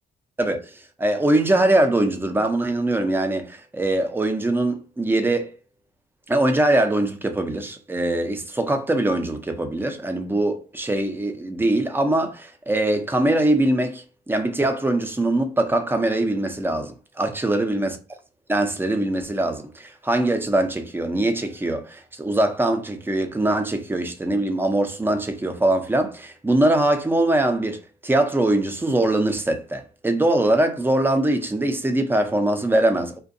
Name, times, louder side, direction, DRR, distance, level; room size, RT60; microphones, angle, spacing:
voice 1, 0.4-5.5 6.3-18.0 18.5-33.2, right 1 dB, 10° right, 0.5 m, -22 dB
2.6 x 2.2 x 2.6 m
cardioid pair, 90°, 20 cm